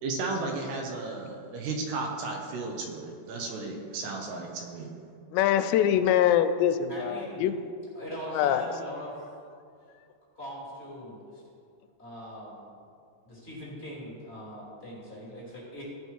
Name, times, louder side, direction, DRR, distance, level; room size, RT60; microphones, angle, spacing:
voice 1, 0.0-4.9, right 3 dB, 75° right, 1 dB, 3.0 m, -34 dB
voice 2, 5.3-7.6 8.3-8.7, left 10 dB, 85° left, 10 dB, 2.7 m, -24 dB
voice 3, 6.9-7.5 7.9-9.1 10.3-11.4 12.0-12.7 13.2-15.8, equal, 20° left, -6 dB, 2.2 m, -41 dB
16.5 x 5.5 x 4.6 m, 2.4 s
omnidirectional pair, 5.0 m